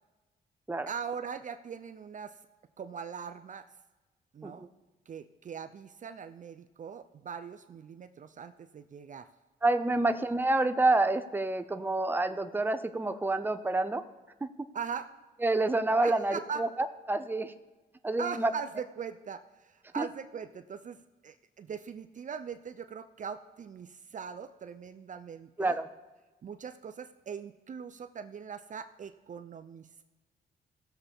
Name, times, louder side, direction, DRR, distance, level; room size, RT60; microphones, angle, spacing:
voice 1, 0.9-2.4 2.8-3.7 4.3-4.7 5.1-9.3 14.7-15.1 16.0-16.6 18.2-21.0 21.2-25.8 26.4-30.0, right 6 dB, 45° right, 10 dB, 0.5 m, -41 dB
voice 2, 9.6-14.0 14.4-14.5 15.4-16.7 17.1-17.5 18.0-18.5 20.0-20.1 25.6-25.9, right 2 dB, 10° right, 9 dB, 0.7 m, -28 dB
17.5 x 6.9 x 3.6 m, 1.2 s
cardioid pair, 85°, 17 cm